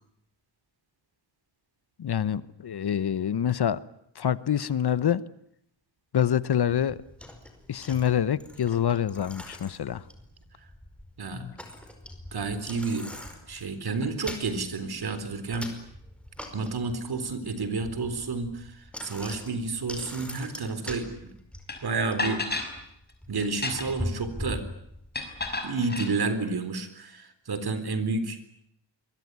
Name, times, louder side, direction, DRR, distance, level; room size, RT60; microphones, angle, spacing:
voice 1, 2.0-3.8 4.1-5.2 6.1-7.0 7.7-10.0 11.3-11.5, left 9 dB, 60° left, 1.1 m, -26 dB
Bicycle, 6.7-25.5, left 1 dB, 5° left, 5.1 m, -42 dB
voice 2, 12.3-13.1 13.5-15.7 16.5-21.1 21.8-22.5 23.3-24.7 25.6-28.4, right 3 dB, 55° right, 3.9 m, -30 dB
sound 1, 21.7-21.8 22.2-22.7 23.5-24.1 25.1-26.1, left 2 dB, 20° left, 6.2 m, -31 dB
25.5 x 22.5 x 9.6 m
wide cardioid pair, 110°, 44 cm